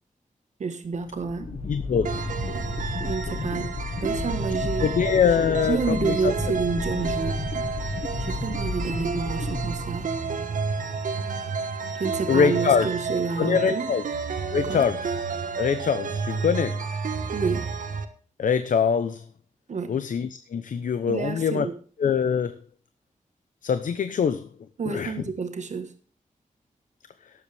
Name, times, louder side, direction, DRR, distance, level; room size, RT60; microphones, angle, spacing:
voice 1, 0.6-1.5 3.0-4.9 5.4-10.1 11.9-13.9 14.7-14.9 17.3-17.7 19.7-19.9 21.1-21.8 24.8-25.9, right 5 dB, 60° right, 8 dB, 1.4 m, -30 dB
sound 1, 0.9-10.4, left 3 dB, 50° left, 1.4 m, -33 dB
voice 2, 1.7-2.3 4.8-6.3 12.3-12.9 13.4-14.0 14.5-15.1 15.6-16.8 18.4-19.2 19.9-21.7 22.0-22.6 23.6-24.5 24.9-25.1, left 6 dB, 75° left, 11 dB, 0.8 m, -23 dB
sound 2, 2.0-18.0, right 5 dB, 80° right, 1.4 m, -31 dB
18.5 x 7.9 x 3.4 m, 0.41 s
wide cardioid pair, 180°, 14 cm